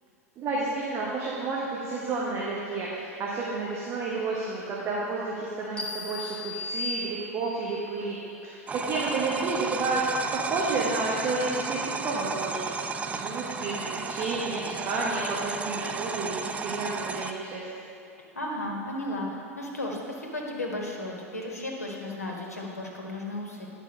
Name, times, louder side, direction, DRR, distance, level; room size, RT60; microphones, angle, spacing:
voice 1, 0.4-8.2 8.4-10.0 10.3-17.6, right 3 dB, 35° right, -4 dB, 1.3 m, -31 dB
sound 1, 5.8-7.6, left 2 dB, 15° left, 1.2 m, -35 dB
sound 2, 8.7-17.3, right 4 dB, 15° right, 0.4 m, -33 dB
voice 2, 18.3-23.7, left 1 dB, 85° left, -1 dB, 1.3 m, -34 dB
10.0 x 5.4 x 5.3 m, 2.4 s
figure-of-eight pair, 85°, 8 cm